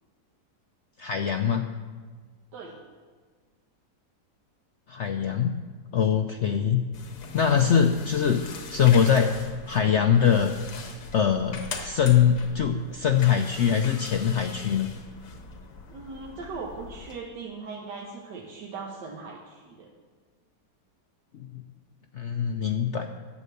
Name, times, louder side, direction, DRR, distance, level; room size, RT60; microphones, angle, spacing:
voice 1, 1.0-1.7 4.9-5.6 5.9-6.8 7.3-8.4 8.7-9.3 9.7-10.5 11.1-14.9 21.4-21.5 22.1-23.1, left 8 dB, 75° left, 6 dB, 0.6 m, -22 dB
sound 1, 6.9-17.2, left 4 dB, 90° left, 1.8 m, -42 dB
voice 2, 15.9-19.9, right 4 dB, 85° right, -1 dB, 1.8 m, -39 dB
11.5 x 8.2 x 6.8 m, 1.5 s
omnidirectional pair, 1.8 m